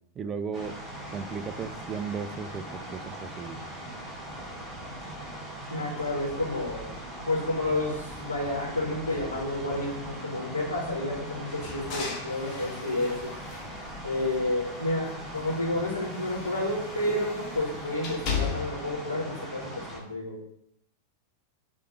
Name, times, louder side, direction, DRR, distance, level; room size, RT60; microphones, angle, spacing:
voice 1, 0.1-0.8 1.1-3.6, right 5 dB, 25° right, 10 dB, 0.5 m, -35 dB
sound 1, 0.5-20.0, right 1 dB, ahead, 2.0 m, -40 dB
voice 2, 5.7-6.9 7.2-13.3 14.0-20.5, left 1 dB, 80° left, -3 dB, 1.6 m, -30 dB
sound 2, 11.5-14.6 15.0-19.0, left 5 dB, 35° left, 1.7 m, -37 dB
6.8 x 3.2 x 4.9 m, 0.74 s
figure-of-eight pair, 90°, 0 cm